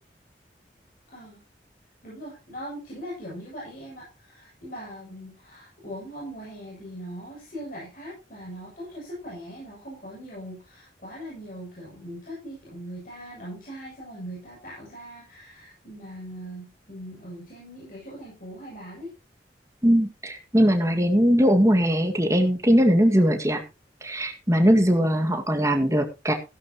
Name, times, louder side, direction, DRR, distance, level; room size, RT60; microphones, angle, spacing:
voice 1, 1.1-1.4 2.0-19.1, equal, 50° left, -5 dB, 7.4 m, -40 dB
voice 2, 19.8-23.6 24.0-26.3, equal, 15° right, 4 dB, 1.9 m, -20 dB
16.0 x 11.5 x 3.0 m, 0.29 s
head